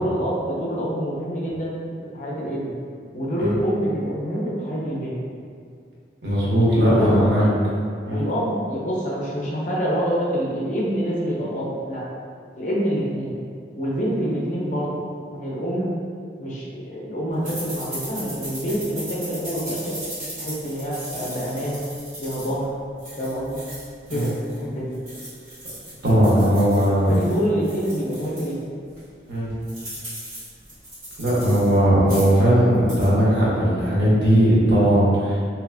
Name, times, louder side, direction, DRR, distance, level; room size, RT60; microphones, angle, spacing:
voice 1, 0.0-2.8 3.1-5.2 6.7-7.5 8.1-12.0 12.6-13.4 13.7-14.9 15.3-15.9 16.4-20.0 20.4-21.8 22.2-22.7 23.2-23.6 24.1-24.9 26.3-28.6, equal, 45° left, -5 dB, 0.5 m, -26 dB
voice 2, 6.2-7.5 8.0-8.2 24.1-24.3 26.0-27.2 29.3-29.5 31.2-35.4, equal, 75° right, -8 dB, 0.8 m, -18 dB
sound 1, 17.4-24.6 24.9-28.5 29.0-29.1 29.3-31.7 32.0-32.4 32.7-33.1, right 1 dB, 45° right, 1.3 m, -37 dB
2.8 x 2.3 x 2.4 m, 2.2 s
head